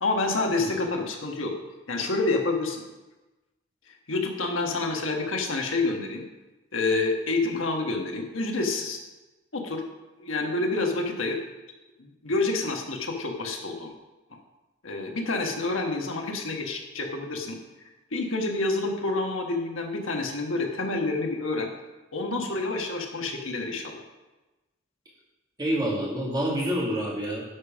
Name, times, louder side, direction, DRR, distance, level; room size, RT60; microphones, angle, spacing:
voice 1, 0.0-1.5 1.9-2.8 4.1-6.2 6.7-9.0 9.5-9.8 10.2-11.4 12.0-13.9 14.8-17.6 18.1-21.7 22.1-24.0, left 3 dB, 85° left, 2 dB, 1.4 m, -28 dB
voice 2, 25.6-27.4, equal, 20° right, -4 dB, 2.4 m, -27 dB
10.5 x 5.1 x 6.2 m, 1.1 s
head